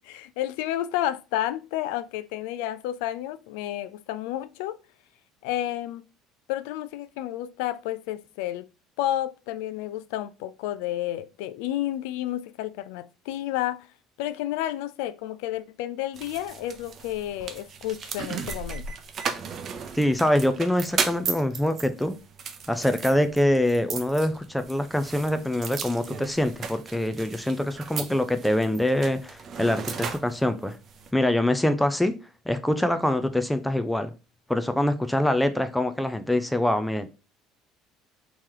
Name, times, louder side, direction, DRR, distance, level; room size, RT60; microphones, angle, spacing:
voice 1, 0.0-4.8 5.4-6.0 6.5-8.7 9.0-13.9 14.2-18.9, left 13 dB, 85° left, 0.3 m, -31 dB
sound 1, 16.1-31.1, right 6 dB, 45° right, 0.6 m, -36 dB
voice 2, 20.0-22.2 22.7-30.8 31.1-32.1 32.5-34.1 34.5-37.1, left 1 dB, 5° left, 0.4 m, -24 dB
3.0 x 3.0 x 3.7 m
supercardioid pair, 95°, 0 cm